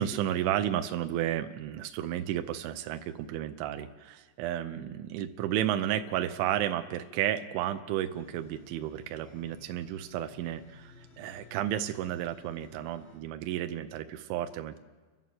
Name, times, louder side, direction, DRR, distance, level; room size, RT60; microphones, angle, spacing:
voice 1, 0.0-14.8, right 11 dB, 85° right, 7 dB, 3.2 m, -32 dB
sound 1, 8.1-13.2, left 4 dB, 50° left, 6.3 m, -56 dB
30.0 x 11.5 x 7.6 m, 1.4 s
omnidirectional pair, 5.3 m